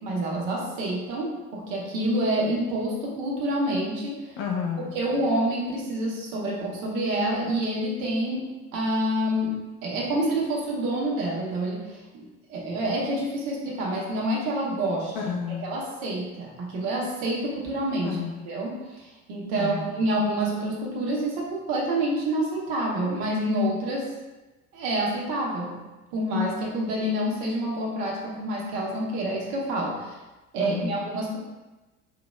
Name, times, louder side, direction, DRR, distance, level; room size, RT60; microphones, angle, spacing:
voice 1, 0.0-4.4 4.9-8.5 8.7-9.5 9.8-15.2 15.6-18.2 18.5-24.1 24.7-25.8 26.1-30.2 30.5-31.4, right 1 dB, 60° right, -3 dB, 1.1 m, -27 dB
voice 2, 4.4-5.0 15.1-15.6 18.0-18.3 19.5-20.0 30.6-31.0, left 6 dB, 50° left, 0 dB, 0.8 m, -31 dB
4.8 x 2.9 x 2.3 m, 1.1 s
figure-of-eight pair, 60°, 44 cm